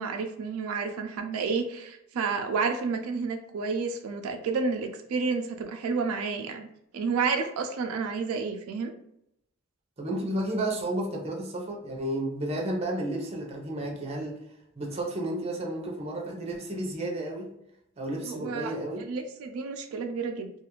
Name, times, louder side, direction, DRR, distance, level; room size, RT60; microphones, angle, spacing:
voice 1, 0.0-6.7 6.9-8.9 18.3-20.5, right 4 dB, 90° right, 5 dB, 0.4 m, -30 dB
voice 2, 10.0-14.4 14.7-17.5 18.0-19.0, right 1 dB, 30° right, -1 dB, 0.6 m, -32 dB
2.4 x 2.4 x 2.9 m, 0.79 s
head